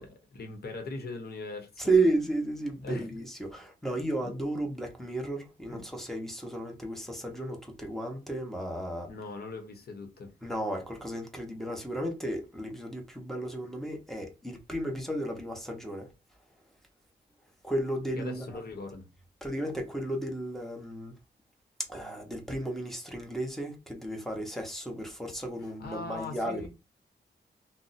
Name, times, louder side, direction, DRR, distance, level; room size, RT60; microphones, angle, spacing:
voice 1, 0.0-1.9 2.8-3.1 4.2-4.3 5.7-5.9 9.1-10.3 18.2-19.1 25.6-26.7, left 3 dB, 60° left, 0.9 m, -40 dB
voice 2, 1.8-9.1 10.4-16.1 17.6-18.4 19.4-21.1 21.9-26.7, right 2 dB, ahead, 0.8 m, -33 dB
2.6 x 2.0 x 4.0 m
wide cardioid pair, 125°, 18 cm